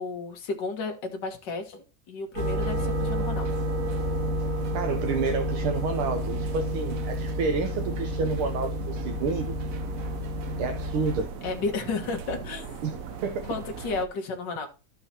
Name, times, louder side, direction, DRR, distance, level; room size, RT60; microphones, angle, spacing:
voice 1, 0.0-3.7 11.4-12.7 13.5-14.7, left 4 dB, 60° left, 2.1 m, -33 dB
sound 1, 2.3-11.2, left 1 dB, 35° right, 3.8 m, -30 dB
sound 2, 2.4-14.1, right 5 dB, 60° right, 0.9 m, -39 dB
voice 2, 4.7-9.6 10.6-11.3 12.8-13.5, right 5 dB, 80° right, 1.7 m, -29 dB
13.0 x 5.9 x 2.9 m
omnidirectional pair, 2.3 m